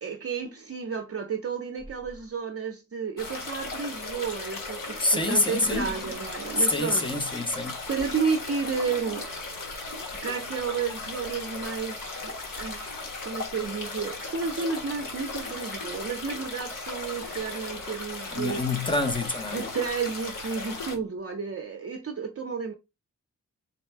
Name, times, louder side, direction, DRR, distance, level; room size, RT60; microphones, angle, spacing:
voice 1, 0.0-7.3 7.9-9.3 10.2-18.9 19.5-22.7, right 5 dB, 45° right, 0.7 m, -32 dB
sound 1, 3.2-21.0, left 3 dB, 75° left, 1.1 m, -36 dB
voice 2, 5.0-5.9 6.6-7.8 18.3-19.6, left 2 dB, 15° left, 0.7 m, -26 dB
4.0 x 2.2 x 4.4 m
wide cardioid pair, 145°, 32 cm